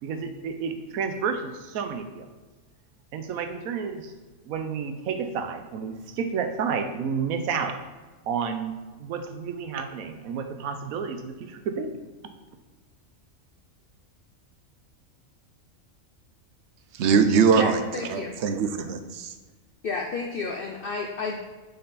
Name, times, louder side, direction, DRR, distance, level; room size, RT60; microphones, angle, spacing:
voice 1, 0.0-2.3 3.1-4.1 4.5-7.8 8.3-12.0, right 6 dB, 90° right, 7 dB, 1.1 m, -31 dB
voice 2, 16.9-19.3, right 6 dB, 65° right, 8 dB, 0.8 m, -22 dB
voice 3, 17.5-18.3 19.8-21.4, left 4 dB, 60° left, 2 dB, 0.6 m, -31 dB
6.7 x 4.3 x 3.9 m, 1.3 s
omnidirectional pair, 1.4 m